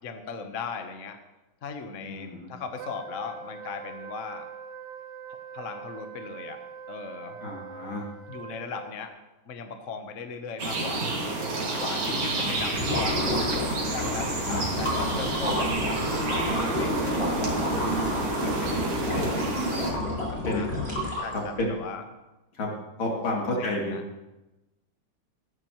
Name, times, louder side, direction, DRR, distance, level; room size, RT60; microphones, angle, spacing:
voice 1, 0.0-1.2 1.6-4.5 5.5-6.6 6.9-7.4 8.3-9.1 9.5-11.2 11.8-13.6 13.9-17.8 18.4-20.7 21.2-22.0 23.3-24.0, left 5 dB, 50° left, 6 dB, 1.1 m, -38 dB
voice 2, 2.0-2.5 7.4-8.0 12.0-12.6 14.2-14.6 20.4-20.7 21.3-21.7 22.5-22.7 23.0-24.0, left 1 dB, 80° left, -2 dB, 3.3 m, -31 dB
Wind instrument woodwind instrument, 2.8-9.1, right 7 dB, 65° right, 1.7 m, -43 dB
sound 1, 10.6-19.9, right 2 dB, 85° right, 3.1 m, -29 dB
sound 2, 12.7-21.6, left 1 dB, 30° left, 4.0 m, -30 dB
16.0 x 13.5 x 3.0 m, 1.0 s
omnidirectional pair, 2.2 m